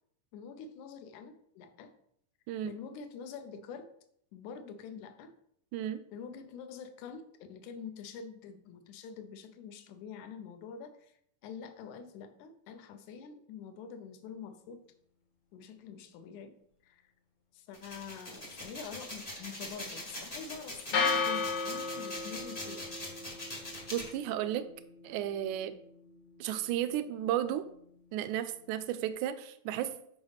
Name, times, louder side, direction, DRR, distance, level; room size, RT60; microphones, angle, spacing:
voice 1, 0.3-1.9 2.6-3.9 4.3-5.3 6.1-7.2 7.5-11.1 11.4-14.8 15.5-16.5 16.8-17.1 17.5-22.9, left 6 dB, 75° left, 9 dB, 2.0 m, -46 dB
voice 2, 5.7-6.0 23.9-24.7 25.0-25.7 26.4-27.6 28.1-29.9, right 11 dB, 80° right, 11 dB, 1.8 m, -33 dB
sound 1, 17.7-24.1, left 1 dB, 35° left, 0.6 m, -43 dB
sound 2, 20.9-29.1, left 5 dB, 55° left, 1.7 m, -37 dB
8.7 x 4.9 x 4.0 m, 0.69 s
omnidirectional pair, 3.8 m